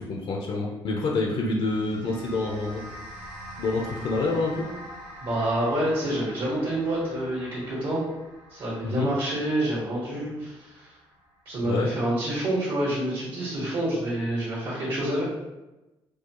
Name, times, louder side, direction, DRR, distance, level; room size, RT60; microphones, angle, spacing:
voice 1, 0.0-2.8 3.6-4.7 8.8-9.1 11.6-11.9, left 3 dB, 65° left, 0 dB, 0.6 m, -27 dB
sound 1, 1.5-12.0, equal, 90° right, 0.9 m, -45 dB
voice 2, 5.2-8.0 8.5-10.9 11.4-15.2, right 1 dB, 65° right, -8 dB, 1.3 m, -27 dB
4.6 x 2.3 x 3.0 m, 1.0 s
cardioid pair, 115°, 10 cm